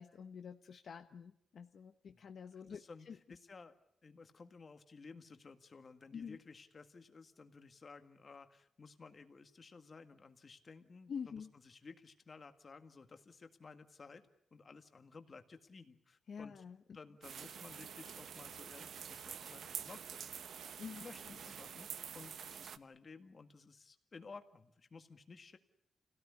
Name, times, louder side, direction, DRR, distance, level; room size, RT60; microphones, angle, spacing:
voice 1, 0.0-3.2 6.1-6.4 11.1-11.5 16.3-16.8 20.8-21.0, left 6 dB, 50° left, 6 dB, 1.1 m, -47 dB
voice 2, 2.1-3.8 4.0-16.6 16.9-25.6, left 4 dB, 30° left, 8 dB, 1.9 m, -56 dB
sound 1, 17.2-22.8, right 8 dB, 65° right, 1.0 m, -47 dB
29.5 x 17.5 x 9.7 m, 0.74 s
wide cardioid pair, 180°, 0 cm